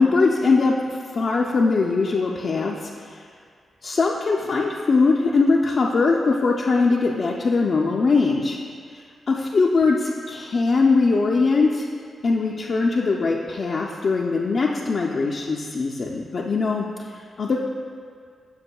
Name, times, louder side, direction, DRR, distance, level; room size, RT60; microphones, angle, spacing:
voice 1, 0.0-3.3 3.8-8.6 8.9-11.8 12.2-17.6, left 4 dB, 55° left, -2 dB, 0.4 m, -21 dB
7.0 x 6.4 x 2.2 m, 2.2 s
cardioid pair, 55°, 0 cm